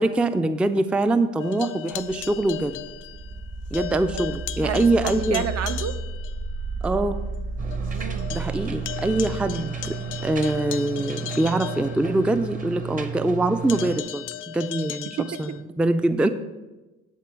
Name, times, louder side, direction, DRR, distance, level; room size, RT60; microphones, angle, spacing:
voice 1, 0.0-2.8 3.7-5.5 6.8-7.2 8.3-10.0 10.2-16.3, right 2 dB, 5° right, 10 dB, 0.3 m, -24 dB
sound 1, 1.4-3.5 3.7-6.4 6.8-6.9 7.4-7.5 7.7-12.5 13.7-15.6, left 12 dB, 85° left, 0.5 m, -37 dB
sound 2, 1.9-10.7, right 3 dB, 85° right, 2.1 m, -33 dB
voice 2, 3.9-4.2 4.6-6.0 7.8-8.3 15.2-15.3, right 8 dB, 55° right, 10 dB, 0.6 m, -30 dB
sound 3, 7.6-14.0, right 7 dB, 25° right, 0.8 m, -33 dB
11.0 x 3.8 x 6.0 m, 1.1 s
cardioid pair, 90°, 30 cm